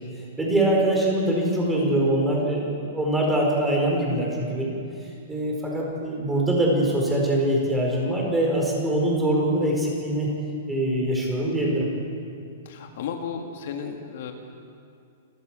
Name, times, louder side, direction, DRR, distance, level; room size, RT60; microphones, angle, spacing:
voice 1, 0.4-4.7 5.0-10.3 10.7-11.9, right 1 dB, 5° right, -2 dB, 4.7 m, -23 dB
voice 2, 12.7-14.3, left 7 dB, 55° left, 4 dB, 1.9 m, -34 dB
28.5 x 14.5 x 7.6 m, 2.5 s
hypercardioid pair, 170°, 0 cm